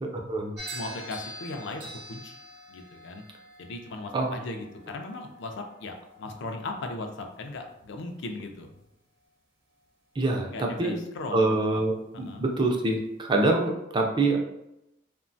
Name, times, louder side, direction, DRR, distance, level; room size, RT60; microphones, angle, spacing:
voice 1, 0.0-0.5 4.1-4.3 10.2-11.0 11.3-14.4, right 2 dB, 25° right, 2 dB, 0.4 m, -25 dB
sound 1, 0.6-8.9, equal, 55° right, 0.8 m, -46 dB
voice 2, 0.7-2.4 2.7-3.2 3.6-8.7 10.5-11.8 12.1-12.4, left 2 dB, 65° left, 4 dB, 0.4 m, -37 dB
2.8 x 2.1 x 2.6 m, 0.86 s
head